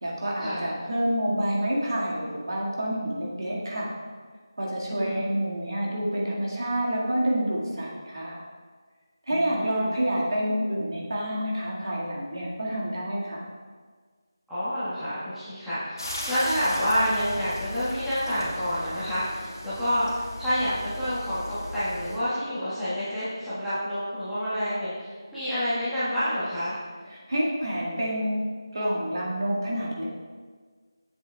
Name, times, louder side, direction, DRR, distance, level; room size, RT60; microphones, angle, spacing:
voice 1, 0.0-3.9 4.6-8.4 9.3-13.4 27.1-28.4 28.7-30.0, equal, 60° right, -4 dB, 1.8 m, -28 dB
voice 2, 4.9-5.2 9.3-9.9 14.5-26.7, equal, ahead, -18 dB, 1.4 m, -28 dB
sound 1, 16.0-22.2, left 1 dB, 70° left, 2.0 m, -37 dB
7.8 x 7.3 x 2.3 m, 1.5 s
figure-of-eight pair, 165°, 2 cm